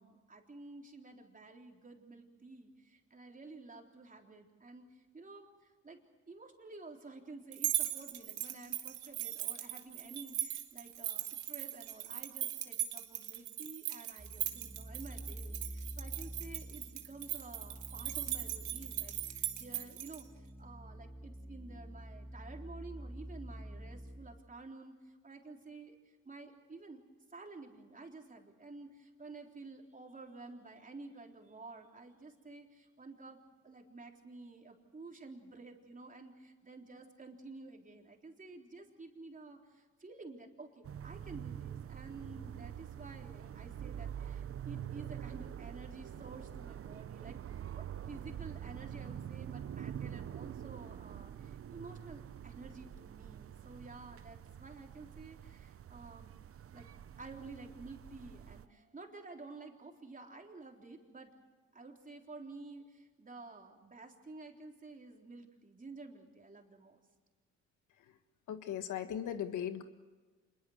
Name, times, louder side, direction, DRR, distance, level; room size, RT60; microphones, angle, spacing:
voice 1, 0.0-6.0 6.3-27.0 27.3-56.3 56.7-56.9 57.2-61.3 61.7-67.0, right 3 dB, 25° right, 2 dB, 3.7 m, -51 dB
sound 1, 7.5-20.2, right 13 dB, 90° right, 2.0 m, -39 dB
sound 2, 14.2-24.4, right 1 dB, 5° right, 2.7 m, -48 dB
sound 3, 40.8-58.7, right 9 dB, 50° right, 0.8 m, -46 dB
voice 2, 68.5-69.8, left 10 dB, 80° left, 9 dB, 1.7 m, -38 dB
26.5 x 21.5 x 6.5 m, 1.3 s
cardioid pair, 90°, 30 cm